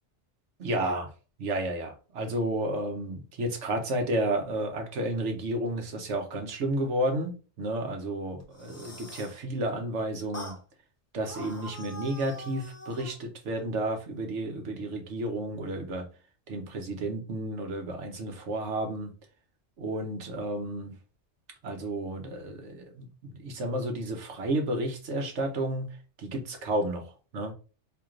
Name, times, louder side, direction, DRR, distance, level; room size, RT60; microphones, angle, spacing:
voice 1, 0.6-1.1 1.4-10.6 11.1-16.1 16.5-19.1 19.8-20.9 21.6-25.9 26.2-27.5, right 1 dB, 85° right, 4 dB, 1.3 m, -31 dB
sound 1, 8.4-9.4 10.3-10.6 11.2-13.2, left 1 dB, 15° left, 0.6 m, -44 dB
4.6 x 2.9 x 2.5 m, 0.35 s
omnidirectional pair, 1.2 m